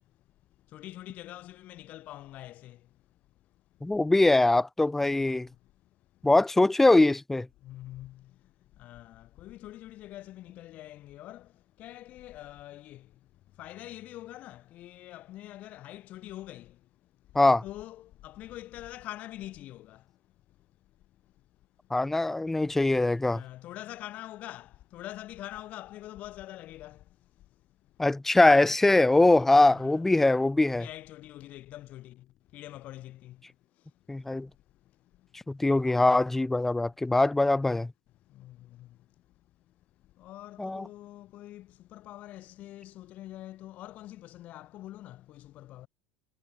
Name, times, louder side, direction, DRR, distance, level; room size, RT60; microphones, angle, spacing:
voice 1, 0.7-2.8 5.1-5.2 7.6-8.1 8.8-11.5 11.8-13.0 13.6-16.7 17.6-20.0 23.3-27.0 29.7-30.1 30.6-32.2 32.5-33.4 38.4-38.9 40.2-45.9, left 14 dB, 50° left, 5.2 m, -44 dB
voice 2, 3.8-5.5 6.2-7.5 17.4-17.6 21.9-23.4 28.0-30.9 34.1-34.5 35.5-37.9 40.6-40.8, left 2 dB, 10° left, 2.1 m, -22 dB
hypercardioid pair, 85°, 3 cm